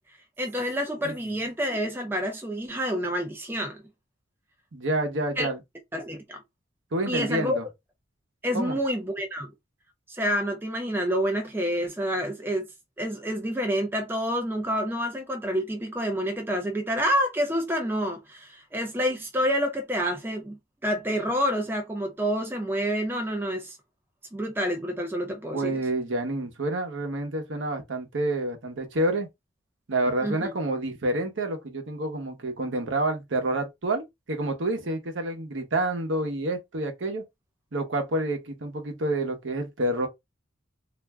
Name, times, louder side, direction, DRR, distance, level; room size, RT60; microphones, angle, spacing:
voice 1, 0.4-3.8 5.4-5.5 5.9-6.4 7.1-7.6 8.4-9.5 10.1-12.7 13.0-23.8 24.3-25.8 30.2-30.5, equal, 10° right, 0.4 m, -28 dB
voice 2, 4.7-5.6 6.9-7.6 8.5-8.8 25.5-29.3 29.9-37.2 37.7-40.1, right 1 dB, 70° right, 0.8 m, -28 dB
2.5 x 2.1 x 3.4 m
head